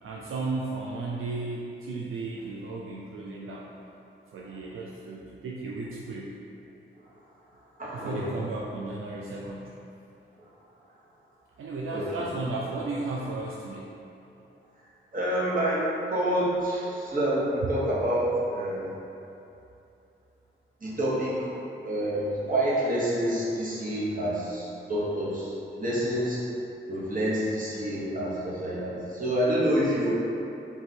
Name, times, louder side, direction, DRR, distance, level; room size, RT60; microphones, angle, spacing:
voice 1, 0.0-3.7 4.3-6.3 7.9-9.7 11.6-13.9 17.6-17.7, right 3 dB, 75° right, -3 dB, 0.4 m, -34 dB
voice 2, 7.8-8.3 11.9-12.1 15.1-18.9 20.8-21.5 21.8-26.4 26.9-30.1, right 1 dB, 40° right, -8 dB, 1.4 m, -28 dB
3.8 x 2.6 x 4.3 m, 2.8 s
cardioid pair, 45°, 21 cm